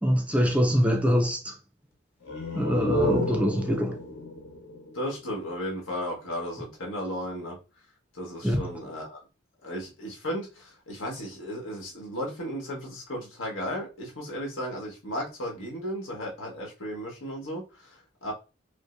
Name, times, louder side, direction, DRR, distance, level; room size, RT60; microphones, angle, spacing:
voice 1, 0.0-1.5 2.5-4.0 8.4-8.8, equal, 5° right, 0.4 m, -24 dB
sound 1, 2.2-5.8, left 1 dB, 70° left, 0.9 m, -31 dB
voice 2, 4.9-7.6 8.1-9.2 9.6-18.3, equal, 90° left, 1.4 m, -35 dB
5.0 x 2.1 x 2.5 m
head